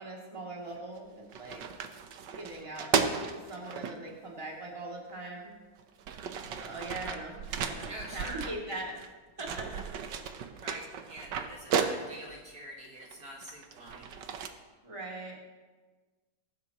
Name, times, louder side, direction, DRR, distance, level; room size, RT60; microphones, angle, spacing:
voice 1, 0.0-1.6 2.4-5.5 6.6-7.4 7.6-8.9 9.4-9.8 14.8-15.4, right 2 dB, 15° right, -3 dB, 2.6 m, -41 dB
sound 1, 0.8-1.0 1.3-3.9 5.1-5.2 5.8-9.1 9.4-12.4 13.0-14.5, right 6 dB, 70° right, 1.5 m, -34 dB
voice 2, 7.9-8.4 10.6-14.1, right 1 dB, 55° right, -2 dB, 2.2 m, -45 dB
21.5 x 11.5 x 3.0 m, 1.3 s
omnidirectional pair, 2.0 m